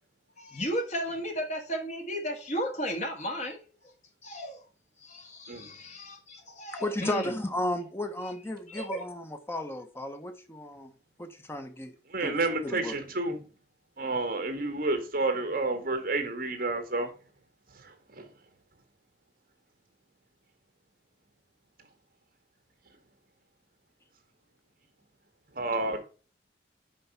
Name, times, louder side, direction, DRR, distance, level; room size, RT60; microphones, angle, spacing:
voice 1, 0.4-3.7 4.2-4.6 5.0-7.3 8.7-9.1, equal, 40° left, 1.8 m, -34 dB
voice 2, 6.7-10.9 11.2-12.9, left 1 dB, 15° left, 0.9 m, -34 dB
voice 3, 12.1-13.4 14.0-17.1 25.6-26.0, right 2 dB, 50° right, 1.7 m, -29 dB
5.7 x 5.0 x 5.6 m
head